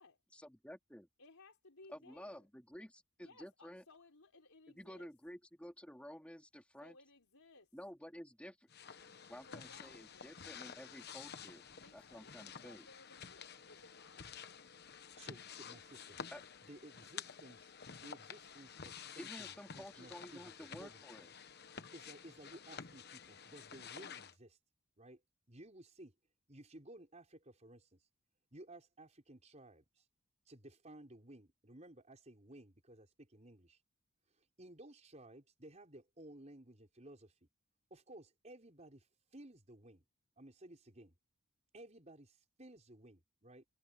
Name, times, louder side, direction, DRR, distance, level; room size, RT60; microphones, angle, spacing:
voice 1, 0.3-1.1 1.9-3.8 4.8-7.0 7.7-8.7 9.3-11.7 11.9-12.9 16.3-16.4 19.2-21.3, equal, 5° left, 3.6 m, -52 dB
voice 2, 1.2-2.5 3.2-5.1 6.8-7.8 9.5-10.3 11.8-14.3, left 2 dB, 70° left, 4.3 m, -62 dB
sound 1, 8.7-24.3, left 7 dB, 45° left, 1.1 m, -51 dB
voice 3, 15.2-16.2 16.7-17.6 17.9-21.0 21.9-24.6 25.0-25.2 25.5-26.1 26.5-28.0 28.5-30.0 30.5-33.8 34.6-37.3 37.9-39.1 39.3-40.0 40.4-41.1 41.7-43.7, right 1 dB, 30° right, 5.0 m, -56 dB
head